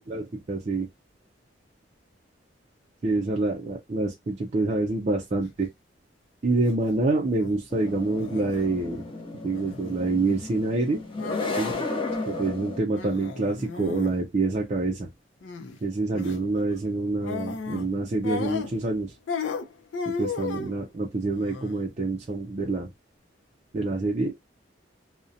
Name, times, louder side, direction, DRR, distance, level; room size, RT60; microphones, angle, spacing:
voice 1, 0.1-0.9 3.0-5.7 6.4-9.0 9.4-11.0 11.6-11.8 12.3-15.1 15.8-19.1 20.2-22.9 23.7-24.3, right 2 dB, 35° right, 0.4 m, -26 dB
sound 1, 6.5-6.7 7.1-7.5 8.2-8.6 9.5-9.9 11.2-11.9 12.1-12.2 12.9-14.2 15.4-15.8 16.1-16.4 17.2-17.9 18.2-19.0 19.3-20.8 21.3-21.8, left 4 dB, 85° left, 0.5 m, -34 dB
sound 2, 7.7-12.8, left 3 dB, 30° left, 0.6 m, -34 dB
2.6 x 2.1 x 2.5 m
head